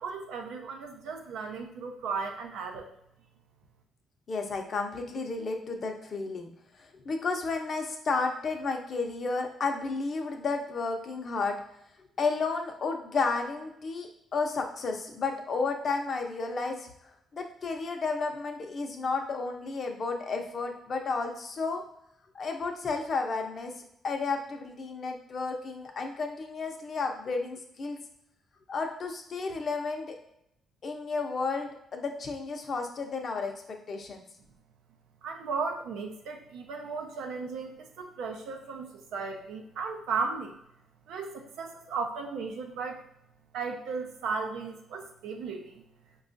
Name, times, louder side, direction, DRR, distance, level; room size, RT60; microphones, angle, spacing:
voice 1, 0.0-2.9 35.2-40.6 41.1-43.0 43.5-45.8, right 4 dB, 85° right, 3 dB, 0.6 m, -35 dB
voice 2, 4.3-6.5 6.8-11.6 12.2-16.9 17.3-21.8 22.3-28.0 28.7-30.2 30.8-34.2, left 4 dB, 50° left, 4 dB, 0.6 m, -32 dB
4.8 x 2.3 x 2.6 m, 0.77 s
cardioid pair, 90°, 0 cm